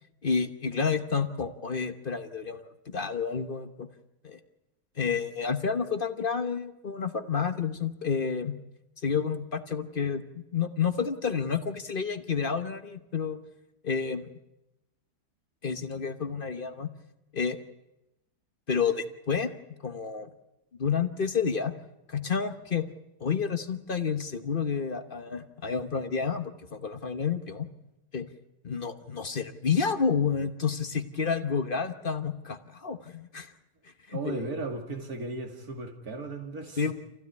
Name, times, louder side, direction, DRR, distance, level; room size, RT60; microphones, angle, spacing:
voice 1, 0.2-3.9 4.2-4.4 5.0-8.5 9.0-10.2 10.5-13.4 13.8-14.2 15.6-16.9 17.3-17.6 18.7-19.5 19.8-20.3 20.8-21.7 22.1-22.9 23.2-27.7 28.1-28.3 28.6-33.5 34.1-34.5 36.8-36.9, left 6 dB, 35° left, 9 dB, 1.1 m, -30 dB
voice 2, 34.1-36.9, right 3 dB, 60° right, 4 dB, 3.1 m, -36 dB
27.5 x 15.5 x 9.5 m, 0.95 s
omnidirectional pair, 1.8 m